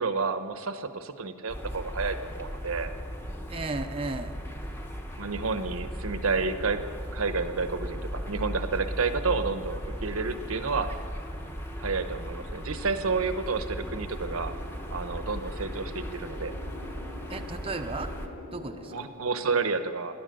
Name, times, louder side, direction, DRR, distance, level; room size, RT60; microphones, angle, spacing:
voice 1, 0.0-2.9 5.2-6.8 7.1-10.9 11.8-14.5 14.9-16.5 18.9-20.1, right 4 dB, 75° right, 10 dB, 0.9 m, -30 dB
sound 1, 1.5-18.3, equal, 10° left, 1.2 m, -37 dB
voice 2, 3.5-4.4 17.3-18.1 18.5-18.9, right 3 dB, 25° right, 6 dB, 0.6 m, -34 dB
sound 2, 13.7-19.0, left 1 dB, 85° left, 3.9 m, -45 dB
17.0 x 11.0 x 6.7 m, 2.5 s
head